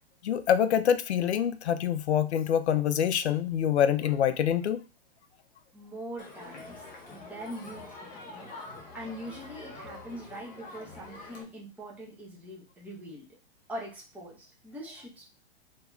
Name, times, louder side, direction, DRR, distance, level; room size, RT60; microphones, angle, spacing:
voice 1, 0.2-4.8, left 9 dB, 80° left, 12 dB, 0.5 m, -25 dB
voice 2, 5.7-13.2 13.7-15.2, equal, 5° right, -5 dB, 0.8 m, -43 dB
Crowd, 6.2-11.4, left 3 dB, 25° left, 0.8 m, -45 dB
2.9 x 2.8 x 2.3 m, 0.32 s
hypercardioid pair, 110°, 33 cm